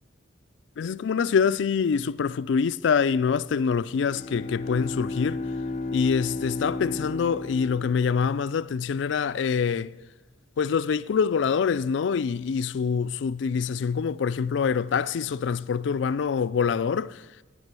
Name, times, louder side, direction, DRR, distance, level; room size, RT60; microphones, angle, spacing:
voice 1, 0.8-5.4 5.9-9.9 10.6-17.2, left 6 dB, 70° left, 0.4 m, -25 dB
Bowed string instrument, 3.9-8.7, left 2 dB, 40° left, 0.7 m, -34 dB
11.0 x 9.1 x 6.8 m
head